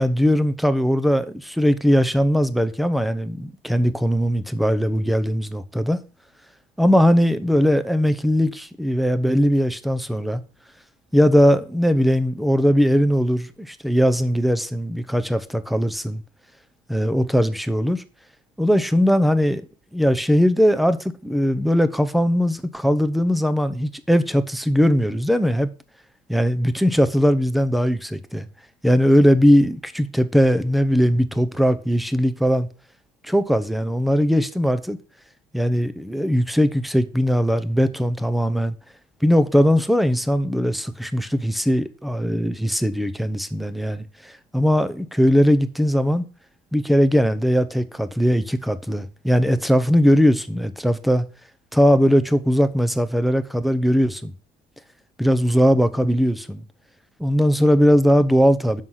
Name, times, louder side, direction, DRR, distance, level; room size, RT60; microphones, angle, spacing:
voice 1, 0.0-6.0 6.8-10.4 11.1-16.2 16.9-18.0 18.6-19.6 19.9-25.7 26.3-28.5 28.8-32.7 33.2-35.0 35.5-38.7 39.2-46.3 46.7-51.3 51.7-54.3 55.2-56.6 57.2-58.8, equal, ahead, 0.8 m, -19 dB
7.3 x 6.4 x 5.7 m
cardioid pair, 110°, 17 cm